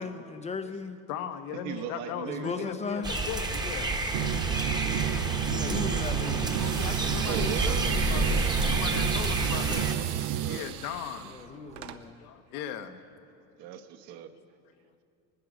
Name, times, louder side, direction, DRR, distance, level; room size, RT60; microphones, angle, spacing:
voice 1, 0.0-1.0 2.2-3.2 5.4-6.6 11.3-12.2, left 4 dB, 15° left, 8 dB, 0.4 m, -36 dB
voice 2, 1.1-3.9 6.6-9.9 10.4-11.3 11.9-13.0 14.3-14.4, left 8 dB, 80° left, 7 dB, 1.2 m, -38 dB
voice 3, 1.6-2.5 7.3-8.6 9.9-10.7 13.6-14.3, right 9 dB, 65° right, 7 dB, 1.2 m, -39 dB
sound 1, 3.0-10.0, right 2 dB, 10° right, 0.9 m, -29 dB
sound 2, 4.1-10.6, right 12 dB, 45° right, 0.4 m, -31 dB
sound 3, 6.5-12.0, right 12 dB, 85° right, 0.9 m, -39 dB
19.5 x 10.5 x 6.3 m, 2.5 s
supercardioid pair, 120°, 44 cm